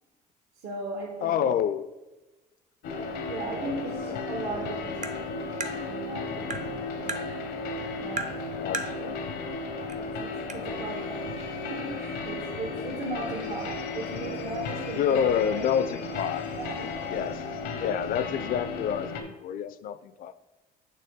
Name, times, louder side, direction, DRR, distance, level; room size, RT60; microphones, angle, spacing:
voice 1, 0.6-1.6 2.9-5.4 5.7-7.1 8.0-9.1 9.5-15.7 16.6-17.2, right 2 dB, 75° right, -1 dB, 1.2 m, -38 dB
voice 2, 1.2-1.8 3.6-3.7 8.6-9.2 15.0-16.5 17.1-17.4 17.7-20.3, left 8 dB, 55° left, 15 dB, 0.4 m, -28 dB
sound 1, 2.8-19.2, left 3 dB, 85° left, 0.8 m, -34 dB
Tap, 5.0-5.2 5.6-5.7 6.5-6.7 7.1-7.2 8.2-8.4 8.7-8.9 9.9-10.0 10.5-10.6, right 3 dB, 45° right, 0.6 m, -32 dB
8.4 x 3.3 x 3.6 m, 1.1 s
cardioid pair, 110°, 17 cm